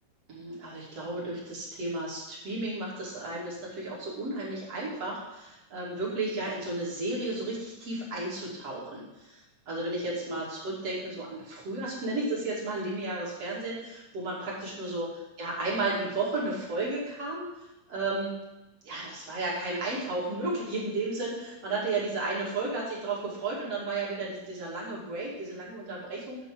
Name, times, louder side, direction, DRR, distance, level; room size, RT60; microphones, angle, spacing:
voice 1, 0.3-15.1 15.4-17.5 17.9-18.3 18.8-26.5, right 2 dB, 40° right, -5 dB, 3.2 m, -33 dB
11.0 x 4.0 x 7.6 m, 0.97 s
omnidirectional pair, 4.6 m